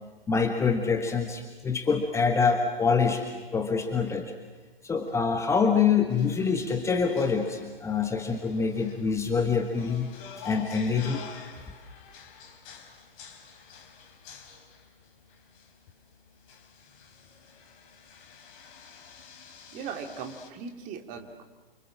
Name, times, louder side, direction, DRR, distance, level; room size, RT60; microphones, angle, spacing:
voice 1, 0.3-3.2 3.5-4.3 4.8-10.1 10.4-11.2, left 5 dB, 10° left, 5 dB, 1.4 m, -25 dB
sound 1, 6.1-20.5, left 6 dB, 35° left, 3.5 m, -49 dB
voice 2, 19.7-21.4, right 6 dB, 25° right, 4 dB, 2.5 m, -38 dB
29.0 x 25.0 x 7.4 m, 1.2 s
figure-of-eight pair, 115°, 29 cm